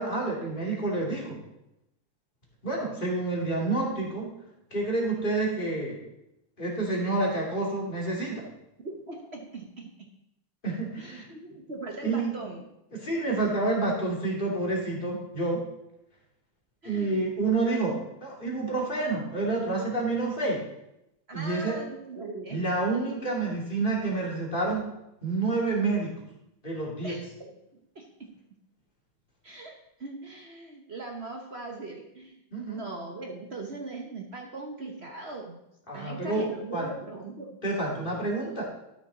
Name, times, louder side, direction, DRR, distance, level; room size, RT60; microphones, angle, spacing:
voice 1, 0.0-1.4 2.6-4.3 4.7-6.0 6.6-8.4 10.6-11.3 12.0-12.3 13.0-15.6 16.8-17.9 18.2-20.6 21.3-21.8 22.5-24.9 25.2-26.1 26.6-27.2 32.5-32.8 35.9-36.4 36.7-36.9 37.6-38.6, right 2 dB, 25° left, -3 dB, 2.4 m, -28 dB
voice 2, 8.8-9.9 11.0-12.6 16.8-17.2 21.3-22.6 27.0-27.2 27.9-28.3 29.4-32.4 32.7-35.6 35.9-37.5, right 3 dB, 45° right, 1 dB, 0.9 m, -40 dB
12.5 x 6.2 x 3.9 m, 0.85 s
omnidirectional pair, 2.3 m